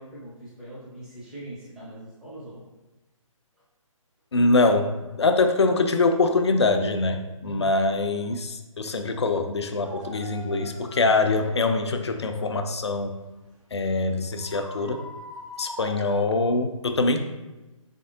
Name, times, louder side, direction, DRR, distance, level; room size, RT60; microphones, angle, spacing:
voice 1, 0.0-2.6 7.4-7.7, right 1 dB, 5° right, -10 dB, 0.7 m, -41 dB
voice 2, 4.3-4.9 5.2-13.1 13.7-15.0 15.6-17.2, left 3 dB, 50° left, 7 dB, 0.4 m, -23 dB
sound 1, 9.8-14.0 14.3-16.2, right 1 dB, 75° right, 1.5 m, -42 dB
4.3 x 3.4 x 2.5 m, 1.1 s
figure-of-eight pair, 145°, 17 cm